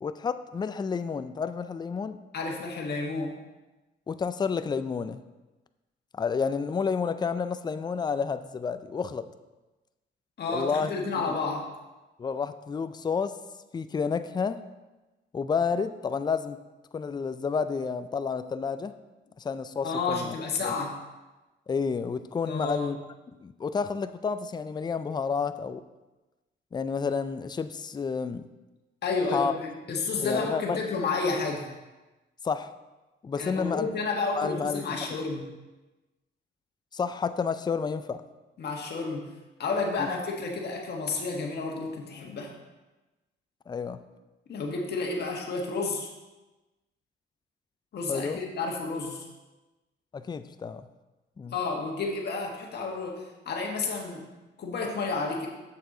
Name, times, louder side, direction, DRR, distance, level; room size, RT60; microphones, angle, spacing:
voice 1, 0.0-2.2 4.1-5.2 6.1-9.3 10.5-10.9 11.2-11.4 12.2-13.4 13.7-14.6 15.3-16.6 16.9-19.0 19.4-20.3 20.6-20.7 21.7-23.0 23.4-25.8 26.7-28.5 29.3-29.5 30.2-30.8 32.4-32.7 33.2-33.9 34.4-34.8 36.9-38.2 40.0-40.1 43.7-44.0 48.1-48.4 50.1-50.9 51.4-51.5, left 5 dB, 20° left, 12 dB, 0.4 m, -30 dB
voice 2, 2.3-3.3 10.4-11.7 19.8-21.0 22.5-22.9 29.0-31.7 33.4-35.5 38.6-39.3 39.6-42.5 44.5-46.1 47.9-49.2 51.5-54.2 54.6-55.5, left 3 dB, 55° left, 0 dB, 1.6 m, -31 dB
6.9 x 6.7 x 3.9 m, 1.1 s
cardioid pair, 90°, 20 cm